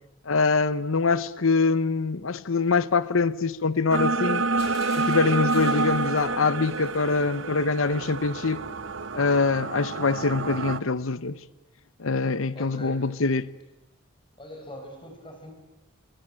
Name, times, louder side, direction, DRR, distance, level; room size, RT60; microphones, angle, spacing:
voice 1, 0.3-4.4 4.9-8.6 9.1-11.4 12.0-13.5, left 4 dB, 85° left, 0.9 m, -24 dB
sound 1, 3.9-10.8, right 3 dB, 70° right, 0.9 m, -28 dB
Shatter, 4.6-7.3, left 3 dB, 50° left, 8.0 m, -44 dB
voice 2, 12.5-13.1 14.4-15.5, left 1 dB, 25° left, 5.5 m, -42 dB
26.0 x 25.5 x 8.8 m
head